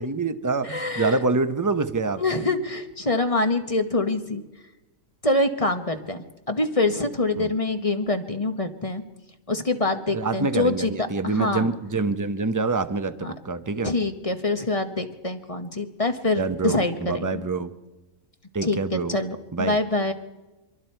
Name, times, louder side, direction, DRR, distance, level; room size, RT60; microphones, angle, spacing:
voice 1, 0.0-2.2 7.4-7.5 10.1-13.9 16.4-17.7 18.5-19.2 19.5-19.8, right 3 dB, 20° right, 10 dB, 0.5 m, -26 dB
voice 2, 0.6-1.2 2.2-4.4 5.2-9.0 9.5-11.7 13.2-13.3 13.8-17.5 18.6-20.1, left 2 dB, 25° left, 7 dB, 1.0 m, -25 dB
25.5 x 23.0 x 4.5 m, 1.1 s
omnidirectional pair, 1.6 m